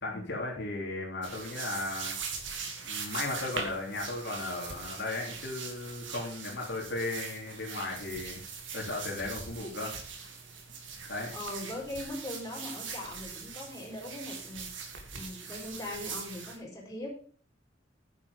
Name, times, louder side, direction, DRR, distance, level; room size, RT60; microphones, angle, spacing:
voice 1, 0.0-2.2 2.8-8.4 8.7-9.9 11.1-11.3, left 2 dB, 60° left, -2 dB, 3.2 m, -36 dB
sound 1, 1.2-16.6, right 5 dB, 70° right, 2.3 m, -41 dB
voice 2, 11.3-17.1, left 1 dB, 20° left, -2 dB, 4.3 m, -40 dB
10.0 x 8.6 x 5.1 m, 0.44 s
head